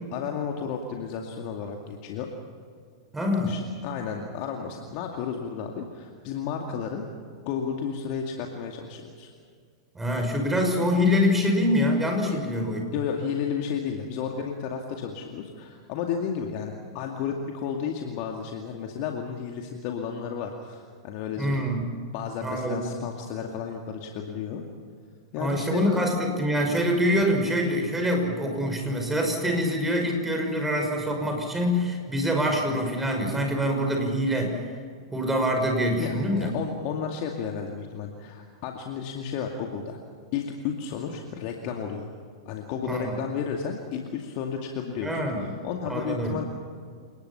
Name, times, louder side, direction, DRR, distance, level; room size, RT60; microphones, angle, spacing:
voice 1, 0.1-2.3 3.5-7.0 7.5-9.3 12.3-12.4 12.9-21.6 22.1-24.6 25.3-25.9 36.0-40.0 40.3-42.1 42.4-46.4, left 7 dB, 45° left, 2 dB, 2.3 m, -32 dB
voice 2, 3.1-3.6 9.9-12.8 21.4-21.9 22.4-22.9 25.4-34.6 35.1-36.5 42.9-43.1 45.0-45.5 45.9-46.4, equal, 10° right, 3 dB, 6.0 m, -25 dB
29.0 x 20.0 x 5.9 m, 2.1 s
figure-of-eight pair, 100°, 2 cm